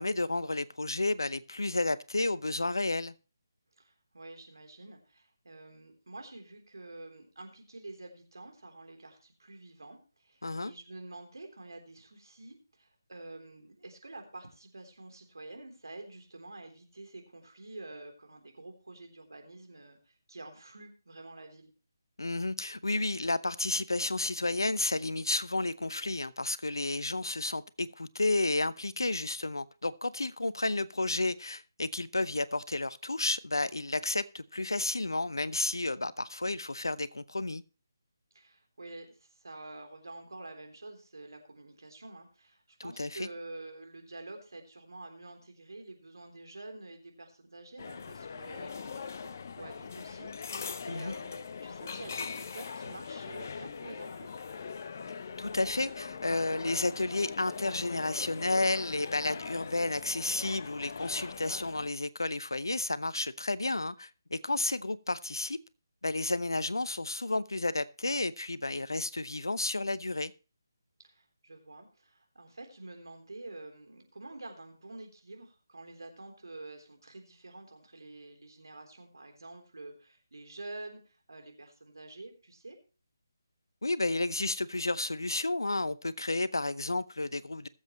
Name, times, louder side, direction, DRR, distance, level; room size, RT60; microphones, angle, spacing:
voice 1, 0.0-3.1 10.4-10.7 22.2-37.6 43.0-43.3 50.9-51.1 55.4-65.6 66.0-70.3 83.8-87.7, left 2 dB, 75° left, 0.7 m, -31 dB
voice 2, 3.8-21.7 38.3-54.4 71.0-82.8, right 2 dB, 70° right, 3.6 m, -48 dB
sound 1, 47.8-61.9, left 5 dB, 45° left, 0.7 m, -41 dB
21.0 x 7.4 x 3.1 m
figure-of-eight pair, 150°, 2 cm